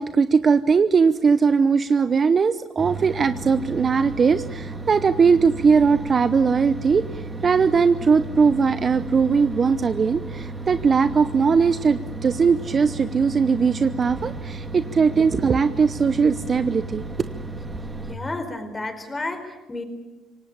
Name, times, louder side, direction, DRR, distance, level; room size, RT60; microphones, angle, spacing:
voice 1, 0.0-17.0, right 5 dB, 40° right, 12 dB, 0.8 m, -20 dB
sound 1, 2.8-18.2, right 2 dB, 15° right, 2.5 m, -34 dB
voice 2, 18.1-19.8, left 2 dB, 20° left, 8 dB, 4.6 m, -31 dB
26.5 x 18.0 x 8.7 m, 1.1 s
supercardioid pair, 85°, 0 cm